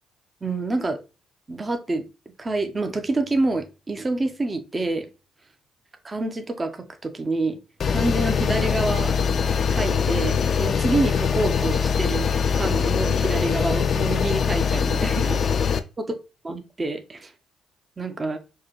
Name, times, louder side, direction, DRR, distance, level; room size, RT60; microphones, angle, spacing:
voice 1, 0.4-1.0 1.5-2.1 2.4-5.1 6.0-7.6 7.9-9.1 9.7-12.3 12.5-15.4 16.4-17.3 18.0-18.4, right 2 dB, 30° right, 7 dB, 0.7 m, -27 dB
sound 1, 7.8-15.8, left 6 dB, 55° left, 0.4 m, -22 dB
4.7 x 2.2 x 3.0 m, 0.29 s
supercardioid pair, 60°, 0 cm